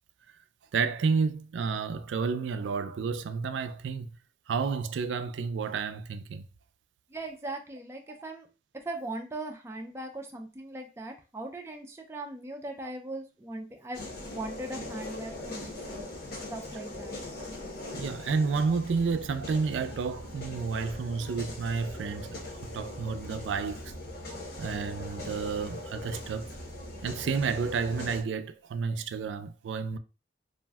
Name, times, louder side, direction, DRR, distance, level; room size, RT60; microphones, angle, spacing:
voice 1, 0.7-4.2 4.5-6.5 17.9-22.4 22.7-23.9 24.6-26.6 27.0-30.0, right 5 dB, 85° right, 0.3 m, -31 dB
voice 2, 7.1-8.5 8.7-17.2, right 2 dB, 15° right, 0.4 m, -39 dB
sound 1, 13.9-28.2, left 1 dB, 55° left, 0.7 m, -41 dB
2.5 x 2.1 x 3.4 m
head